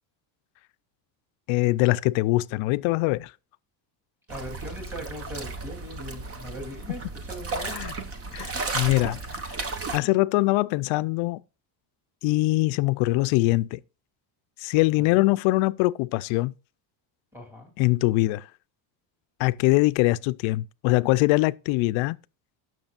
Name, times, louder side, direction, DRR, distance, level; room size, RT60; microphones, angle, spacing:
voice 1, 1.5-3.3 7.6-7.9 8.3-9.2 9.5-9.7 9.9-11.4 12.2-13.8 14.6-16.5 17.8-18.5 19.4-22.2, left 20 dB, 75° left, 0.6 m, -23 dB
voice 2, 4.3-7.8 15.0-15.2 17.3-17.7, equal, 5° right, 3.0 m, -40 dB
sound 1, 4.3-10.0, right 3 dB, 30° right, 1.1 m, -34 dB
17.5 x 6.2 x 2.4 m
cardioid pair, 150°, 48 cm